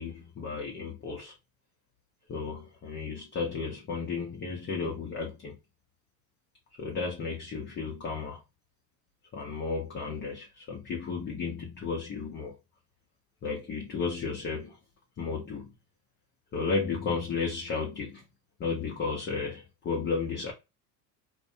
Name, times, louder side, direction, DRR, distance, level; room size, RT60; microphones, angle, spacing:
voice 1, 0.0-1.3 2.3-5.6 6.8-8.4 9.3-12.6 13.4-14.8 15.2-15.7 16.5-18.2 18.6-20.5, left 4 dB, 25° left, 0.6 m, -33 dB
2.4 x 2.1 x 2.5 m
supercardioid pair, 105°, 45 cm